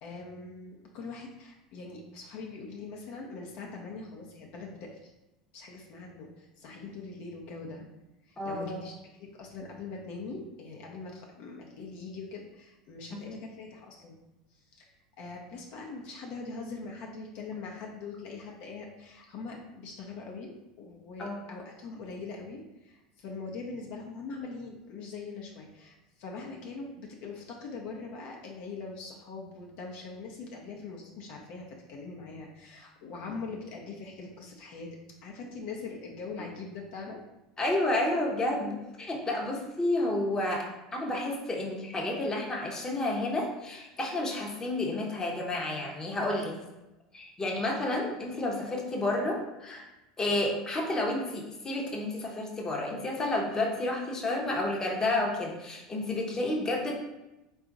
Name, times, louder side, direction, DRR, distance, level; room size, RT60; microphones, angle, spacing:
voice 1, 0.0-5.1 5.5-7.9 8.2-8.9 9.2-14.2 14.5-14.9 15.2-20.5 20.8-34.9 35.2-37.2, left 4 dB, 60° left, -1 dB, 0.7 m, -42 dB
voice 2, 8.4-8.8 21.2-21.4 37.6-46.5 47.1-49.9 50.2-56.9, left 2 dB, 20° left, -1 dB, 0.8 m, -30 dB
3.7 x 2.4 x 3.9 m, 0.98 s
hypercardioid pair, 85°, 3 cm